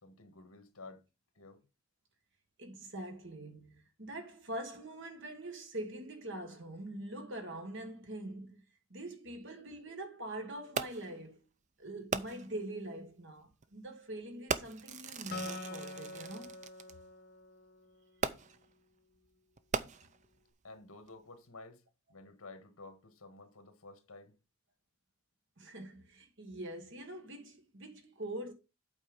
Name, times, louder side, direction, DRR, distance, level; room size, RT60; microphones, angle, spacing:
voice 1, 0.0-1.0 1.3-1.6 20.6-21.8 22.1-24.3, left 3 dB, 75° left, 1.7 m, -52 dB
voice 2, 2.6-8.6 8.9-11.4 11.8-16.6 25.6-28.5, right 1 dB, 55° right, 1.7 m, -44 dB
Fireworks, 10.8-11.2 12.1-12.6 13.5-13.6 14.5-16.9 18.2-18.7 19.6-20.4 21.1-21.2, right 5 dB, 30° right, 0.4 m, -38 dB
Acoustic guitar, 15.3-18.7, left 2 dB, 45° left, 1.0 m, -46 dB
8.4 x 4.4 x 5.2 m
head